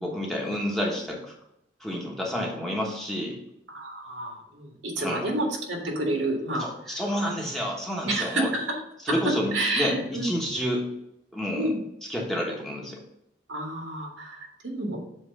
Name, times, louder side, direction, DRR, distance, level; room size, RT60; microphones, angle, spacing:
voice 1, 0.0-1.3 1.8-3.4 5.0-5.3 6.6-8.5 9.0-10.9 11.3-11.7 12.1-13.0, equal, ahead, -2 dB, 1.1 m, -29 dB
voice 2, 3.7-6.7 7.3-7.4 8.1-8.8 9.5-10.3 11.5-11.8 13.5-15.0, right 1 dB, 85° right, 0 dB, 2.0 m, -29 dB
7.5 x 3.2 x 6.2 m, 0.81 s
head